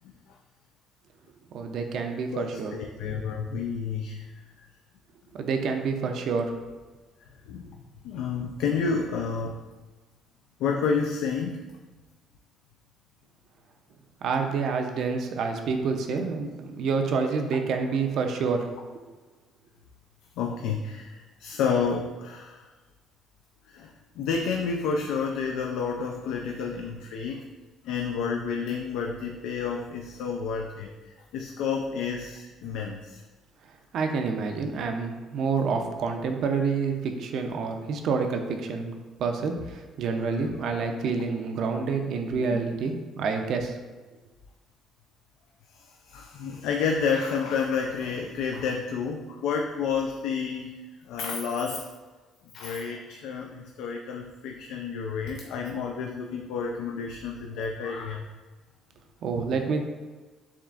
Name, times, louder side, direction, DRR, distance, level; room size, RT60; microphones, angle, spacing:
voice 1, 1.5-2.8 5.3-6.5 14.2-18.7 33.9-43.8 59.2-59.8, right 5 dB, 65° right, 5 dB, 0.5 m, -28 dB
voice 2, 2.3-4.3 7.5-7.7 8.0-9.6 10.6-11.7 20.4-22.6 23.7-23.9 24.2-27.4 27.8-33.2 42.4-42.6 46.1-50.8 51.1-51.8 52.5-58.3, left 5 dB, 80° left, 2 dB, 0.3 m, -30 dB
7.0 x 2.4 x 2.4 m, 1.3 s
cardioid pair, 115°, 0 cm